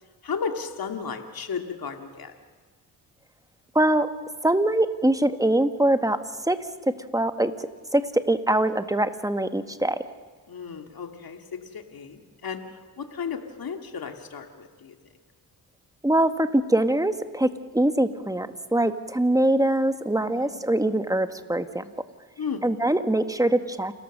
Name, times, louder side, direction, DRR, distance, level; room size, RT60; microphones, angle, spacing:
voice 1, 0.2-2.3 10.5-15.0 20.1-20.6 22.4-22.6, left 6 dB, 50° left, 5 dB, 2.5 m, -34 dB
voice 2, 3.7-4.1 4.4-6.6 7.1-7.5 7.9-10.0 16.0-21.8 22.6-23.9, right 1 dB, 10° right, 9 dB, 1.6 m, -23 dB
29.0 x 14.0 x 6.7 m, 1.4 s
supercardioid pair, 55°, 44 cm